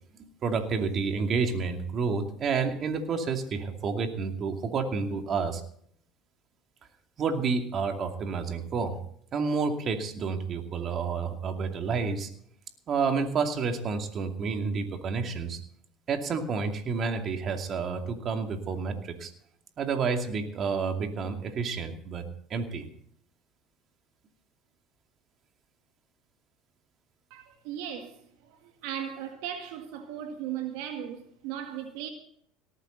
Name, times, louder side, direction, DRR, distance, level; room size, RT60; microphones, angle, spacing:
voice 1, 0.2-5.6 7.2-9.0 9.3-12.3 12.9-15.6 16.1-19.3 19.8-22.8, right 5 dB, 45° right, 5 dB, 2.5 m, -30 dB
voice 2, 27.3-32.1, right 10 dB, 75° right, 5 dB, 1.8 m, -37 dB
18.5 x 13.5 x 4.0 m, 0.63 s
supercardioid pair, 90°, 0 cm